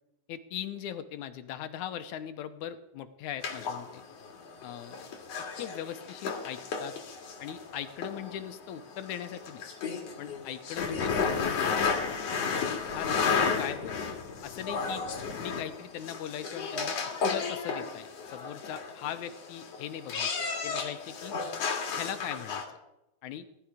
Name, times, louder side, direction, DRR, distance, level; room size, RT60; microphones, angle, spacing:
voice 1, 0.3-4.0 4.6-5.1 5.6-7.0 7.4-9.6 10.2-11.9 12.7-14.0 14.4-15.0 15.4-17.0 17.3-20.3 20.6-21.3 21.9-22.6 23.2-23.5, left 10 dB, 75° left, 11 dB, 1.9 m, -40 dB
sound 1, 3.4-22.7, left 5 dB, 55° left, 2.7 m, -33 dB
18.5 x 12.5 x 5.0 m, 0.90 s
omnidirectional pair, 3.9 m